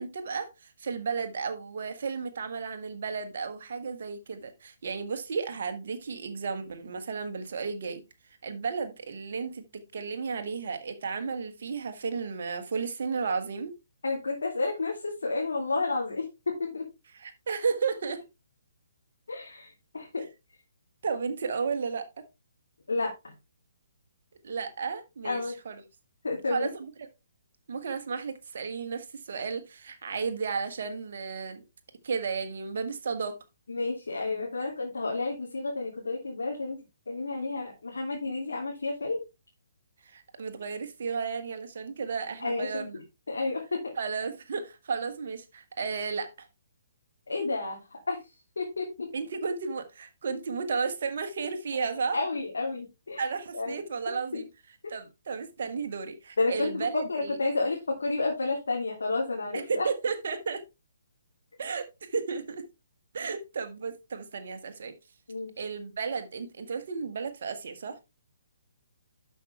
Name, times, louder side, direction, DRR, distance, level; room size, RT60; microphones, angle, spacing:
voice 1, 0.0-8.0 8.4-13.7 17.2-18.2 21.0-22.0 24.4-25.8 26.5-26.9 27.7-31.6 32.0-33.3 40.0-43.0 44.0-46.5 49.1-52.2 53.2-54.4 54.9-57.4 59.5-60.6 61.6-62.6 63.1-64.9 65.6-68.0, right 5 dB, 50° right, 1.6 m, -33 dB
voice 2, 14.0-16.9 19.3-20.3 22.9-23.3 25.2-25.5 26.2-26.7 33.7-36.8 37.1-39.2 42.4-43.9 47.3-49.1 52.1-53.3 53.5-53.8 54.3-54.4 56.4-59.9 65.3-65.5, left 3 dB, 65° left, 2.8 m, -31 dB
12.0 x 5.7 x 3.3 m
figure-of-eight pair, 130°, 0 cm